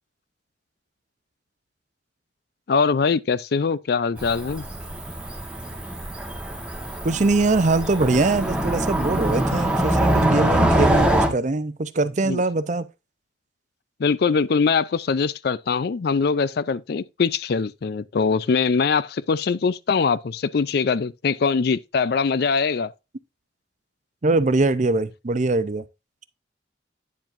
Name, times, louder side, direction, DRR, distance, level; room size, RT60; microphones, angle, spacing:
voice 1, 2.7-4.7 12.3-12.4 14.0-22.9, left 5 dB, 55° left, 0.4 m, -22 dB
Cricket / Motor vehicle (road), 4.2-11.3, right 1 dB, 5° right, 1.2 m, -23 dB
voice 2, 7.0-12.9 24.2-25.8, right 3 dB, 40° right, 0.6 m, -22 dB
9.4 x 7.2 x 2.5 m
head